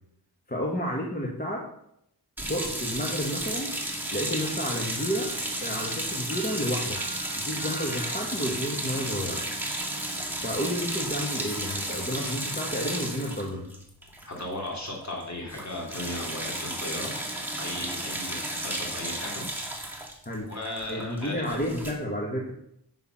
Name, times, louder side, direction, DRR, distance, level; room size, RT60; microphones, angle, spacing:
voice 1, 0.5-1.6 2.4-3.7 4.1-5.3 5.6-7.0 7.4-9.4 10.4-13.7 20.2-20.5 20.9-22.5, equal, 20° left, -2 dB, 1.7 m, -31 dB
sound 1, 2.4-14.7 15.0-15.2 15.5-21.9, right 1 dB, 5° right, 2.0 m, -33 dB
sound 2, 3.9-9.1, right 1 dB, 40° right, 1.8 m, -47 dB
voice 2, 14.3-17.1 17.6-19.4 20.5-21.7, left 1 dB, 45° left, -2 dB, 3.4 m, -36 dB
8.3 x 5.8 x 5.8 m, 0.75 s
cardioid pair, 70°, 40 cm